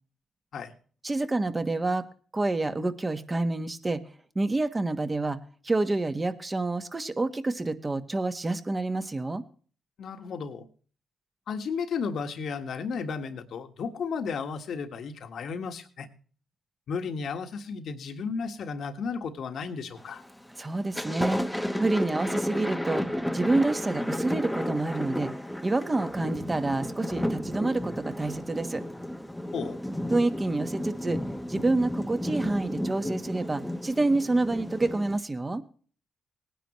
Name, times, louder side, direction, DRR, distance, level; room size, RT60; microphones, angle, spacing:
voice 1, 1.0-2.0 2.3-4.0 4.3-5.4 5.6-9.4 20.6-25.3 25.6-28.8 30.1-31.2 31.5-35.6, right 2 dB, 25° right, 9 dB, 1.3 m, -28 dB
voice 2, 10.0-10.7 11.5-16.1 16.9-20.2 29.5-29.8, left 5 dB, 70° left, 7 dB, 1.6 m, -34 dB
Thunder, 20.0-20.4 20.8-35.2, left 1 dB, 5° left, 1.0 m, -33 dB
18.5 x 10.0 x 3.1 m, 0.42 s
supercardioid pair, 60°, 0 cm